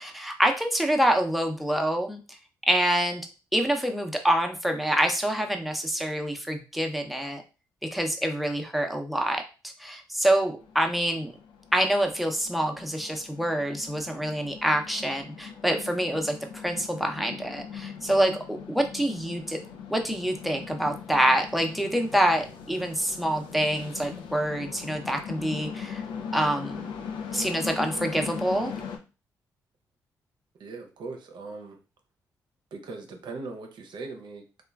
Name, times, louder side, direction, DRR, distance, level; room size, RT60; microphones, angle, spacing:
voice 1, 0.0-2.4 2.7-3.2 3.5-7.4 7.9-11.3 11.7-19.6 19.9-26.0 26.3-26.8 27.3-28.7, right 1 dB, ahead, 3 dB, 0.6 m, -26 dB
sound 1, 10.6-29.0, left 7 dB, 75° left, 0.4 m, -40 dB
voice 2, 30.5-31.8 32.7-34.6, right 3 dB, 60° right, 4 dB, 0.6 m, -40 dB
2.9 x 2.2 x 2.3 m, 0.32 s
hypercardioid pair, 45°, 8 cm